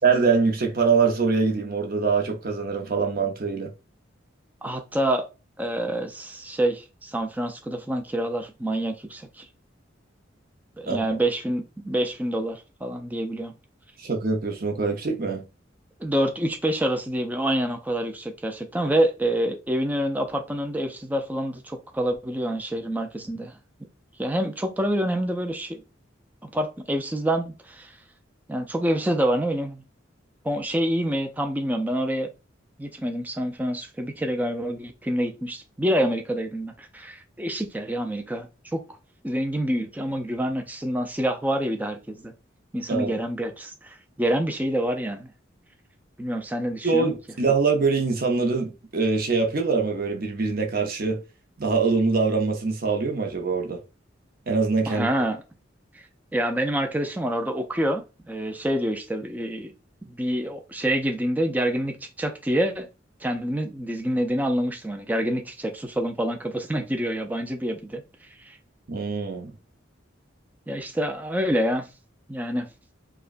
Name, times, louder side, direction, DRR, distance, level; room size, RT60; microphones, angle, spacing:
voice 1, 0.0-3.7 10.9-11.0 14.0-15.4 42.9-43.1 46.8-51.2 51.6-53.8 54.5-55.1 68.9-69.5, right 4 dB, 50° right, 0.7 m, -23 dB
voice 2, 4.6-5.3 5.6-9.5 10.8-13.5 16.0-23.5 24.2-25.8 26.4-28.0 28.5-29.8 30.4-32.3 32.8-38.8 39.2-42.3 42.7-45.3 46.2-47.1 54.9-55.4 56.3-59.7 60.1-62.9 63.2-68.0 68.4-68.6 70.7-71.9 72.3-72.7, right 1 dB, 10° right, 0.4 m, -27 dB
4.9 x 2.1 x 2.5 m
head